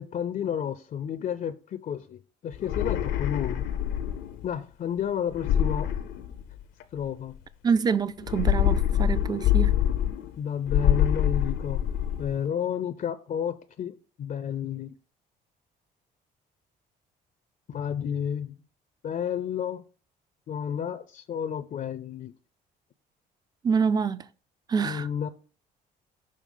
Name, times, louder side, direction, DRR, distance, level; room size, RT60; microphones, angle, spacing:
voice 1, 0.0-3.7 4.4-5.9 6.9-7.4 10.4-11.8 12.2-14.9 17.7-18.6 19.0-19.8 20.5-22.3 24.8-25.3, left 8 dB, 45° left, 0.5 m, -31 dB
sound 1, 2.5-4.4 5.3-6.8 8.2-10.4 10.7-12.4, left 10 dB, 85° left, 0.7 m, -25 dB
voice 2, 7.6-9.8 23.6-24.3 24.7-25.1, right 6 dB, 20° right, 0.4 m, -26 dB
6.6 x 3.3 x 5.4 m
supercardioid pair, 75°, 19 cm